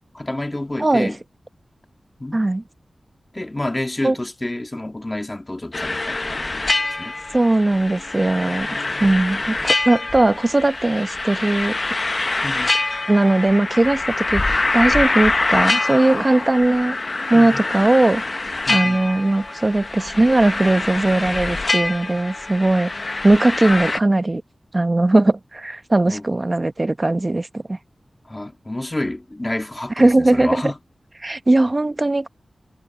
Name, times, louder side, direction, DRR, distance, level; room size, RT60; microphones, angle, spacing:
voice 1, 0.2-1.2 2.2-2.5 3.3-6.4 7.0-7.1 12.4-12.7 17.3-17.6 18.7-19.0 26.1-26.3 28.3-30.8, left 1 dB, 20° left, 2.1 m, -29 dB
voice 2, 0.8-1.1 2.3-2.6 4.0-4.2 7.3-8.7 9.0-11.8 13.1-17.0 17.3-18.2 18.7-24.4 24.7-27.8 30.0-30.6 31.2-32.3, right 2 dB, 30° right, 0.9 m, -18 dB
sound 1, 5.7-24.0, left 2 dB, 35° left, 0.6 m, -24 dB
wide cardioid pair, 110°, 0 cm